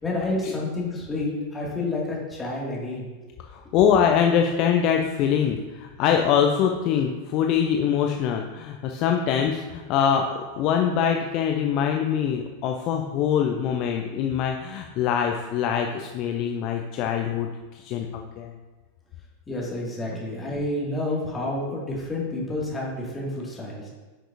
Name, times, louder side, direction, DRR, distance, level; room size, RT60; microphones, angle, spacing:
voice 1, 0.0-3.1 19.5-23.9, left 2 dB, 15° left, -4 dB, 2.3 m, -29 dB
voice 2, 3.5-18.5 20.1-20.2, left 8 dB, 40° left, 3 dB, 0.5 m, -24 dB
9.3 x 6.2 x 2.7 m, 1.2 s
figure-of-eight pair, 90°, 0 cm